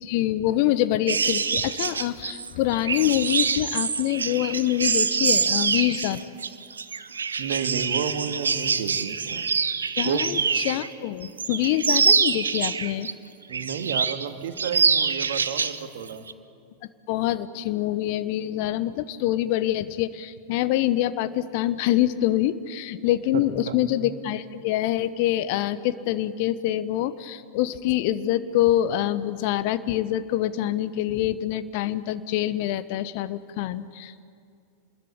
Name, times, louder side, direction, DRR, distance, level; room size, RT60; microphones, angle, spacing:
voice 1, 0.0-6.2 10.0-13.1 17.1-34.1, left 13 dB, 45° left, 14 dB, 0.9 m, -25 dB
sound 1, 1.1-10.9 11.2-13.1 13.5-14.3 14.6-15.8 16.1-16.3, right 6 dB, 70° right, 0.8 m, -25 dB
voice 2, 7.4-9.5 10.0-10.3 13.5-16.2 23.3-24.0, right 7 dB, 55° right, 8 dB, 1.8 m, -31 dB
27.0 x 21.0 x 8.9 m, 2.3 s
figure-of-eight pair, 90°, 0 cm